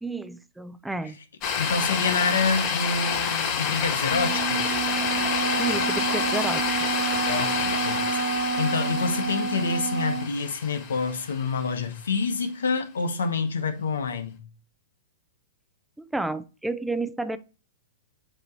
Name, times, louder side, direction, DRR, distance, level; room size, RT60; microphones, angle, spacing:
voice 1, 0.0-1.2 5.6-6.7 16.0-17.4, right 2 dB, 5° right, 0.5 m, -31 dB
sound 1, 1.4-11.7, left 6 dB, 40° left, 2.5 m, -28 dB
voice 2, 1.6-4.8 7.2-14.4, left 4 dB, 90° left, 1.0 m, -27 dB
Wind instrument woodwind instrument, 4.1-10.3, right 5 dB, 60° right, 0.9 m, -29 dB
8.1 x 3.0 x 4.0 m
hypercardioid pair, 130°, 0 cm